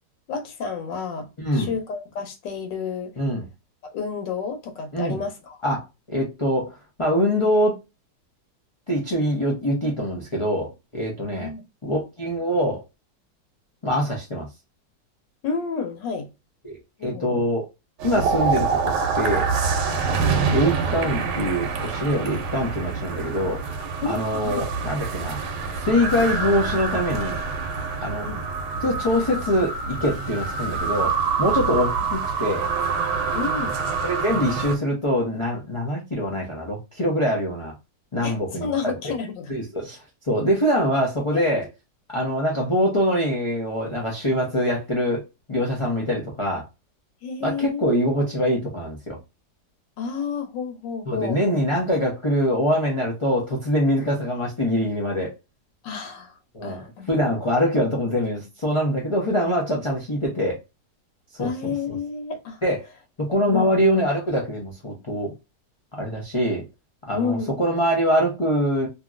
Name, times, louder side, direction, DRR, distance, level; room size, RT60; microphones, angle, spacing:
voice 1, 0.3-1.3 1.5-3.2 3.9-5.3 11.3-11.6 15.4-16.3 17.0-17.5 24.0-24.6 28.2-28.5 33.3-33.8 38.2-39.5 41.3-41.5 47.2-47.9 48.2-48.3 50.0-51.5 55.8-56.3 56.6-57.1 61.4-62.6 63.5-63.7 67.1-67.5, left 5 dB, 80° left, 1.4 m, -30 dB
voice 2, 1.4-1.7 3.2-3.5 4.9-5.2 5.6-7.8 8.9-11.5 11.8-12.8 13.8-14.5 16.6-17.7 18.0-19.5 19.9-23.6 24.0-25.4 25.8-27.4 28.0-28.3 28.8-32.6 34.0-37.7 38.1-39.1 39.5-41.7 42.1-45.2 45.5-46.7 47.4-49.2 51.1-55.3 56.5-56.8 57.1-60.6 61.3-62.0 62.6-62.8 63.2-65.4 65.9-66.6 67.1-68.9, equal, 45° left, 0.4 m, -24 dB
sound 1, 18.0-34.8, right 5 dB, 80° right, 1.3 m, -26 dB
2.9 x 2.7 x 2.4 m
omnidirectional pair, 1.9 m